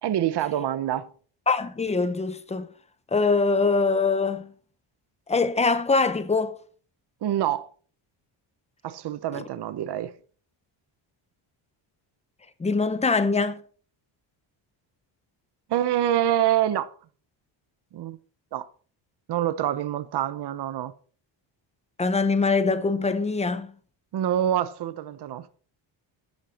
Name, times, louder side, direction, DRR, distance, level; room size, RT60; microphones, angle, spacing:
voice 1, 0.0-1.1 7.2-7.7 8.8-10.1 15.7-16.9 17.9-18.2 18.5-18.7 19.3-20.9 24.1-25.5, right 11 dB, 55° right, 0.9 m, -26 dB
voice 2, 1.5-2.7 3.1-4.5 5.3-6.5 9.3-9.4 12.6-13.6 22.0-23.7, left 4 dB, 15° left, 0.9 m, -23 dB
15.0 x 11.0 x 4.3 m
cardioid pair, 175°, 49 cm